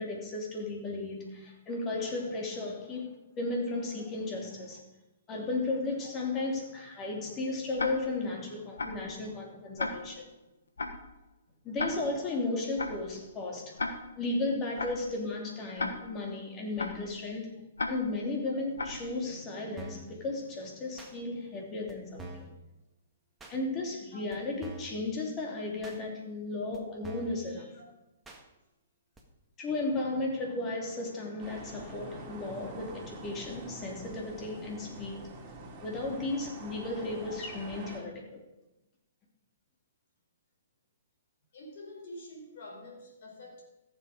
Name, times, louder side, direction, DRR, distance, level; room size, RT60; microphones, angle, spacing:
voice 1, 0.0-3.1 3.4-4.8 5.3-10.3 11.6-13.8 14.2-17.5 17.9-22.5 23.5-27.7 29.6-35.3 35.8-38.4, left 2 dB, 25° left, 0 dB, 2.9 m, -35 dB
Tick-tock, 7.8-8.3 8.8-9.1 9.8-10.3 10.8-11.1 11.8-12.3 12.8-13.1 13.8-14.3 14.8-15.1 15.8-16.3 16.8-17.1 17.8-18.3 18.8-19.1, left 3 dB, 80° left, 1.3 m, -36 dB
sound 1, 19.8-20.1 21.0-21.1 21.9-22.0 22.2-22.5 23.4-23.6 24.3-24.4 24.6-25.0 25.8-26.0 26.7-26.8 27.0-27.4 28.2-28.4 29.2-29.3, right 2 dB, 10° right, 1.7 m, -45 dB
sound 2, 31.4-38.0, right 2 dB, 30° right, 2.8 m, -46 dB
voice 2, 41.5-43.6, left 1 dB, 55° left, 0 dB, 4.4 m, -47 dB
14.5 x 7.5 x 5.1 m, 0.98 s
hypercardioid pair, 125°, 0 cm